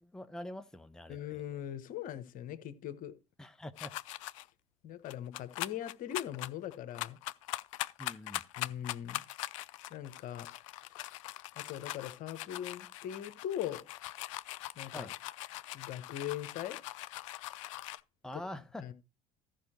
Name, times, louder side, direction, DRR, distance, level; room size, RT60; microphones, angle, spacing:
voice 1, 0.0-1.2 3.4-3.9 8.0-8.4 14.9-15.1 18.2-18.9, left 1 dB, 5° left, 0.8 m, -44 dB
voice 2, 1.1-3.1 4.8-7.2 8.6-9.2 9.9-10.5 11.6-13.8 14.8-15.1 15.7-16.8 18.3-18.4 18.8-18.9, left 11 dB, 55° left, 1.2 m, -40 dB
sound 1, 3.8-4.4 5.1-18.0, left 16 dB, 70° left, 0.5 m, -42 dB
14.0 x 5.1 x 4.5 m
hypercardioid pair, 60°, 17 cm